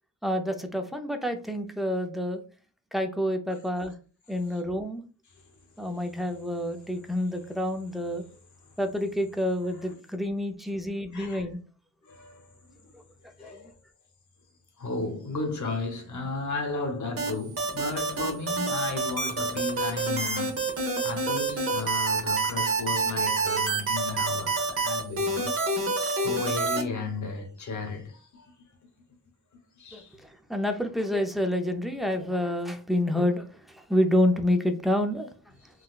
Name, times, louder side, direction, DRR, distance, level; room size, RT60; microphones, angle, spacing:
voice 1, 0.2-2.4 2.9-3.9 4.3-5.0 5.8-8.2 8.8-11.6 13.4-13.5 29.9-30.0 30.5-33.5 33.7-35.3, left 1 dB, ahead, 0.5 m, -28 dB
voice 2, 11.1-11.4 12.0-12.4 13.4-13.7 14.8-20.6 21.0-25.5 26.2-28.5 29.8-30.1, left 3 dB, 60° left, 1.0 m, -34 dB
sound 1, 17.2-26.8, right 3 dB, 45° right, 0.9 m, -27 dB
3.9 x 2.1 x 2.3 m
cardioid pair, 85°, 33 cm